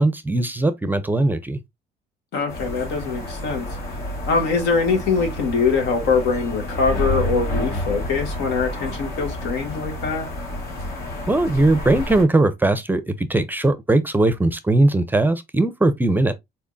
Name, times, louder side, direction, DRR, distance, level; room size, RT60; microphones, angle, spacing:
voice 1, 0.0-1.6 11.3-16.3, right 2 dB, 10° right, 0.5 m, -19 dB
voice 2, 2.3-3.7 4.3-10.3, left 4 dB, 85° left, 1.7 m, -23 dB
sound 1, 2.5-12.2, left 1 dB, 65° left, 2.5 m, -29 dB
4.3 x 3.5 x 2.5 m
cardioid pair, 110°, 17 cm